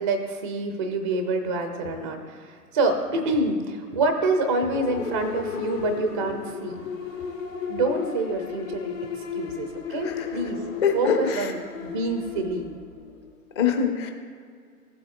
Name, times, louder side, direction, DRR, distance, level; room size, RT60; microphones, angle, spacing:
voice 1, 0.0-6.8 7.7-10.6 10.9-12.7, right 2 dB, 20° right, 6 dB, 0.4 m, -27 dB
sound 1, 4.7-13.4, left 6 dB, 55° left, 1.6 m, -34 dB
voice 2, 10.8-11.5 13.6-14.1, left 6 dB, 15° left, 4 dB, 0.6 m, -24 dB
15.5 x 7.6 x 2.4 m, 2.2 s
figure-of-eight pair, 115°, 48 cm